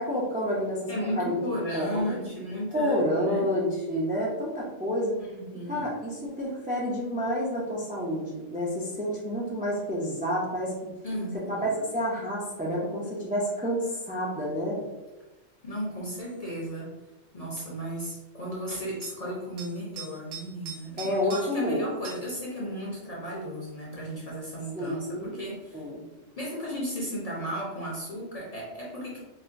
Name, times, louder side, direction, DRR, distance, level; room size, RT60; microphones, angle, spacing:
voice 1, 0.0-0.8 1.2-1.3 1.7-2.2 2.7-5.1 5.7-10.7 11.5-14.8 21.0-21.8 24.8-25.4 25.7-26.0, equal, 15° right, -5 dB, 0.3 m, -29 dB
voice 2, 0.9-3.5 5.2-5.9 11.0-11.8 15.6-16.9 17.3-25.8 26.4-29.2, equal, 40° left, -5 dB, 0.6 m, -35 dB
sound 1, 16.2-16.4 19.0-19.2 19.6-21.7 22.0-22.3 24.8-24.9, right 5 dB, 55° right, 0.8 m, -43 dB
4.2 x 2.1 x 2.5 m, 1.1 s
omnidirectional pair, 1.3 m